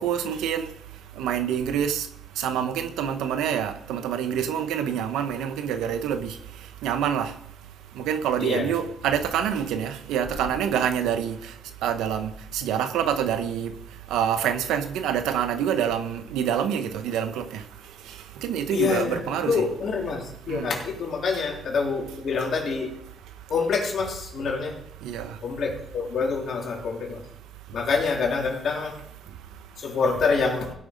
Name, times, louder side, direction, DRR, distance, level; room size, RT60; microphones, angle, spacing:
voice 1, 0.0-7.4 7.9-19.6 20.5-20.7 25.0-25.4 27.7-27.8 29.3-29.8, right 9 dB, 90° right, 1.0 m, -27 dB
voice 2, 8.4-8.8 18.7-23.0 23.5-24.8 25.4-27.2 27.7-29.0 29.8-30.7, left 4 dB, 60° left, 3.3 m, -26 dB
16.0 x 6.3 x 5.3 m
cardioid pair, 90°, 0 cm